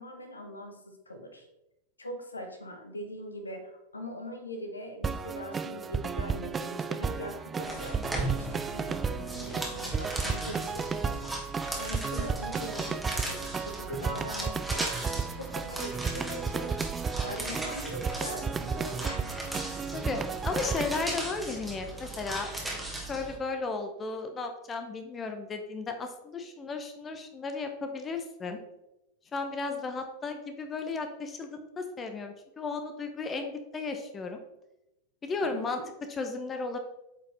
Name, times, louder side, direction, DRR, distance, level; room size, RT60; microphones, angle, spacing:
voice 1, 0.0-1.5 2.0-14.9 15.3-16.8 17.2-19.3 35.4-35.9, equal, 80° left, 6 dB, 1.0 m, -42 dB
sound 1, 5.0-21.0, right 5 dB, 20° right, 0.3 m, -33 dB
sound 2, 7.6-23.4, right 2 dB, ahead, 1.6 m, -38 dB
voice 2, 20.4-22.5 22.9-28.6 29.3-34.4 35.2-35.8 36.2-36.8, left 4 dB, 20° left, 6 dB, 0.9 m, -34 dB
8.6 x 4.9 x 3.4 m, 0.90 s
figure-of-eight pair, 90°, 0 cm